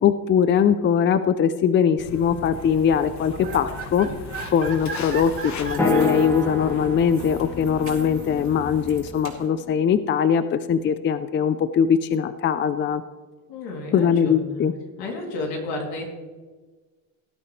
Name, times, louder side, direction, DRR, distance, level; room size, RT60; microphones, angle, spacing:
voice 1, 0.0-4.1 4.5-13.0 13.9-14.7, left 7 dB, 30° left, 12 dB, 0.5 m, -21 dB
Walk footsteps, 2.0-9.0, left 4 dB, 50° left, 1.4 m, -38 dB
sound 1, 3.0-9.5, right 4 dB, 35° right, 2.7 m, -37 dB
sound 2, 5.8-9.9, left 2 dB, 5° left, 1.3 m, -30 dB
voice 2, 13.5-14.7 15.0-16.1, left 2 dB, 80° left, 1 dB, 3.0 m, -31 dB
17.5 x 8.9 x 3.2 m, 1.3 s
cardioid pair, 110°, 37 cm